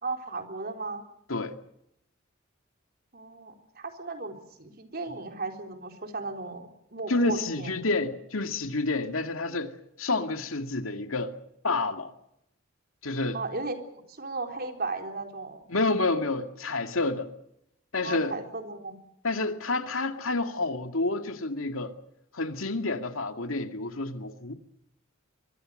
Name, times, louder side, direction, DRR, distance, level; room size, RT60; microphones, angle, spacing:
voice 1, 0.0-1.0 3.1-7.7 13.3-15.7 18.0-19.0, right 3 dB, 50° right, 3.8 m, -36 dB
voice 2, 7.1-9.7 10.0-11.3 11.6-12.1 13.0-13.4 15.7-17.3 17.9-18.4 19.2-21.9 22.3-24.5, left 2 dB, 90° left, 2.2 m, -29 dB
23.5 x 23.0 x 6.5 m
head